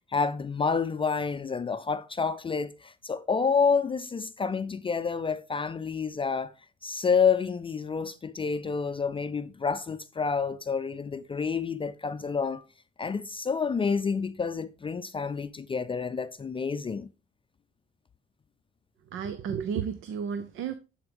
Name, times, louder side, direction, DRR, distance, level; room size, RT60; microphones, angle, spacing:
voice 1, 0.1-6.5 6.8-12.6 13.0-17.1, left 5 dB, 25° left, 0.4 m, -29 dB
voice 2, 19.1-20.8, right 7 dB, 85° right, 0.7 m, -32 dB
11.5 x 4.6 x 3.4 m
cardioid pair, 90°, 20 cm